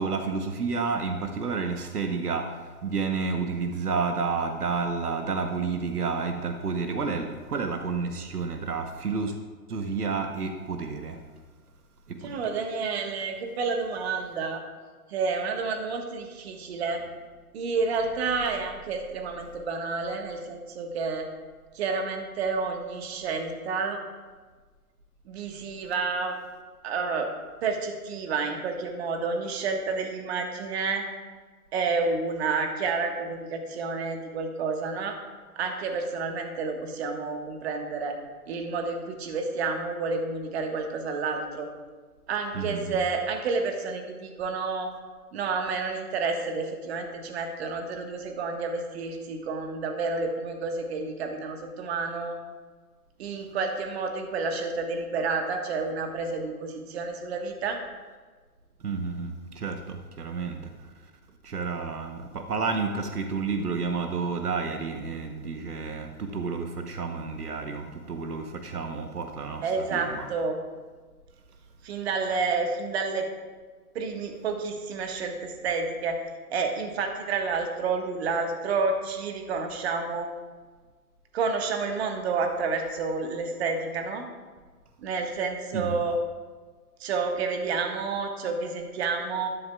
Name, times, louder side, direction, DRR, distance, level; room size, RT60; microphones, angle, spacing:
voice 1, 0.0-9.3 9.7-11.2 12.1-12.4 42.5-43.0 58.8-60.9 61.4-70.3 85.7-86.0, right 4 dB, 80° right, 5 dB, 1.1 m, -30 dB
voice 2, 12.2-14.6 15.1-17.0 17.5-21.3 21.7-24.0 25.2-26.4 26.8-27.3 27.6-31.0 31.7-35.2 35.6-38.1 38.5-41.7 42.3-44.9 45.3-52.4 53.2-57.8 69.6-70.6 71.8-73.3 73.9-76.2 76.5-80.3 81.3-84.3 85.0-86.2 87.0-89.5, right 4 dB, 45° right, 4 dB, 1.4 m, -30 dB
12.5 x 11.5 x 2.3 m, 1.4 s
figure-of-eight pair, 125°, 46 cm